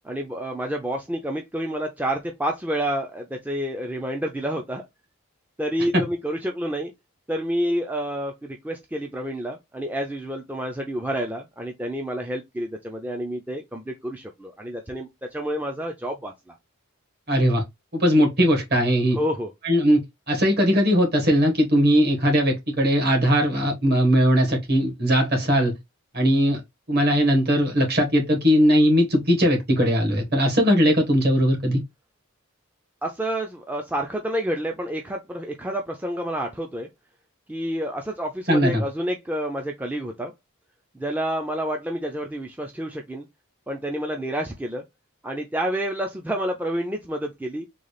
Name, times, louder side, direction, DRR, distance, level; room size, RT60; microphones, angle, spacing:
voice 1, 0.0-4.8 5.6-6.9 7.3-16.6 19.1-19.5 33.0-36.9 37.5-40.3 40.9-43.3 43.7-44.8 45.2-47.7, equal, 5° right, 0.4 m, -29 dB
voice 2, 17.3-17.6 17.9-19.2 19.6-20.0 20.3-25.7 26.1-26.6 26.9-31.8 38.5-38.8, equal, 45° right, 1.5 m, -19 dB
3.8 x 2.3 x 3.2 m
head